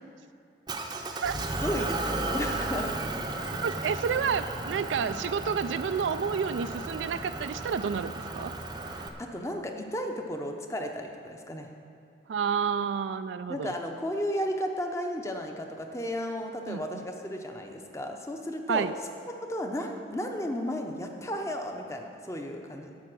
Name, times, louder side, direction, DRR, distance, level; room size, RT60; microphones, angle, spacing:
Motor vehicle (road) / Engine, 0.7-9.1, right 2 dB, 25° right, 0.6 m, -34 dB
voice 1, 1.5-2.9 8.9-11.7 13.5-18.9 19.5-22.9, equal, 15° left, 3 dB, 0.7 m, -34 dB
voice 2, 3.6-8.5 12.3-13.7 16.7-17.0 18.7-18.9, right 6 dB, 90° right, 11 dB, 0.3 m, -30 dB
11.5 x 7.8 x 6.1 m, 2.5 s
head